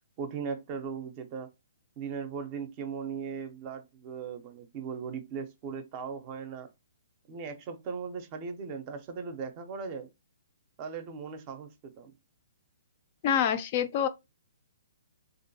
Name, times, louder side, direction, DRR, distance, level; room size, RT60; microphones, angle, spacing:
voice 1, 0.2-1.5 2.0-6.7 7.3-10.1 10.8-12.1, right 6 dB, 35° right, 0.5 m, -38 dB
voice 2, 13.2-14.1, left 8 dB, 40° left, 0.3 m, -26 dB
2.5 x 2.2 x 2.6 m
hypercardioid pair, 135°, 0 cm